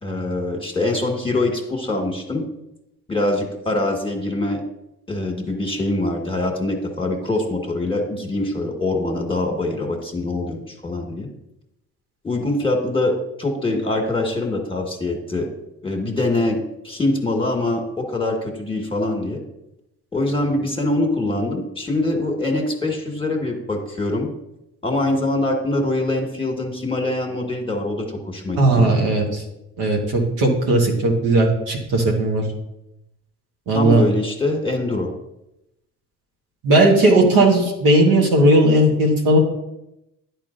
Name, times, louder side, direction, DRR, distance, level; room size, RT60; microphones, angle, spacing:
voice 1, 0.0-2.4 3.1-4.6 5.1-11.3 12.2-15.5 15.8-19.4 20.1-24.3 24.8-28.9 33.7-35.1, left 2 dB, 15° left, 3 dB, 1.6 m, -23 dB
voice 2, 28.6-29.4 29.8-32.4 33.7-34.0 36.6-39.4, right 1 dB, 75° right, -1 dB, 1.6 m, -16 dB
10.0 x 4.8 x 2.6 m, 0.88 s
hypercardioid pair, 50°, 37 cm